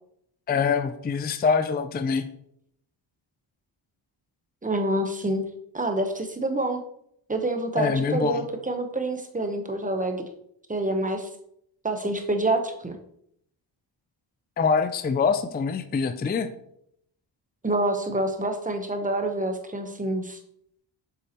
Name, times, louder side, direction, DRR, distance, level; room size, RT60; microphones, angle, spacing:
voice 1, 0.5-2.3 7.8-8.4 14.6-16.5, left 5 dB, 20° left, 9 dB, 0.4 m, -24 dB
voice 2, 4.6-5.4 5.7-6.8 7.3-10.2 10.7-11.3 11.8-12.9 17.6-20.4, right 1 dB, 15° right, 5 dB, 0.9 m, -27 dB
7.5 x 6.8 x 2.9 m, 0.71 s
wide cardioid pair, 120°, 49 cm